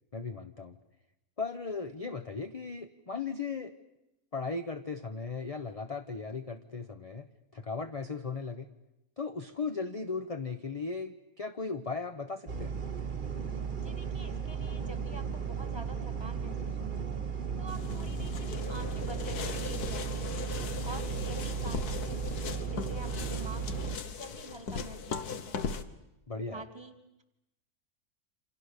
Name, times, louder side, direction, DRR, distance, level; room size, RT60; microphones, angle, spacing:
voice 1, 0.1-0.8 1.4-3.7 4.3-7.3 7.5-8.7 9.2-12.8 26.3-26.6, left 4 dB, 30° left, 7 dB, 0.9 m, -37 dB
sound 1, 12.5-24.0, right 7 dB, 35° right, 1.3 m, -35 dB
voice 2, 13.8-17.0 17.6-20.2 20.8-22.2 22.7-25.6 26.5-27.2, right 1 dB, 15° right, 7 dB, 2.3 m, -47 dB
sound 2, 17.7-25.8, left 5 dB, 80° left, 1.7 m, -38 dB
28.5 x 26.5 x 6.8 m, 0.90 s
omnidirectional pair, 1.6 m